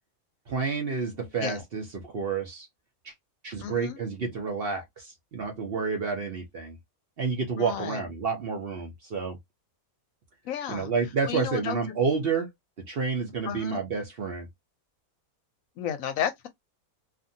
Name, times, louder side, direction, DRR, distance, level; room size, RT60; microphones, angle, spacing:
voice 1, 0.5-2.7 3.0-3.1 3.4-6.8 7.2-9.4 10.7-12.5 12.9-14.5, right 5 dB, 50° right, 0.8 m, -29 dB
voice 2, 3.6-4.0 7.6-8.0 10.4-10.9 11.3-11.8 13.5-13.8 15.8-16.5, left 9 dB, 70° left, 0.9 m, -32 dB
2.6 x 2.5 x 2.6 m
omnidirectional pair, 1.5 m